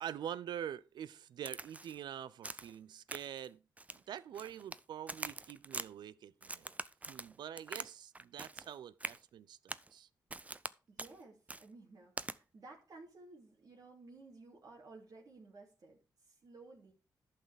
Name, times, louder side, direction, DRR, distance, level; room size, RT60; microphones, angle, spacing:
voice 1, 0.0-3.6 3.9-6.7 7.1-10.1, right 10 dB, 80° right, 0.5 m, -45 dB
Crack, 1.4-2.0 2.4-2.8 3.1-3.5 3.8-4.8 5.1-5.9 6.4-7.9 8.1-8.7 9.0-9.2 9.7-9.9 10.3-10.7 11.0-11.1 11.5-11.6 12.2-12.4, right 2 dB, 20° right, 0.5 m, -44 dB
voice 2, 10.9-16.0 16.4-16.9, right 3 dB, 60° right, 2.7 m, -55 dB
11.0 x 5.8 x 4.9 m
cardioid pair, 60°, 7 cm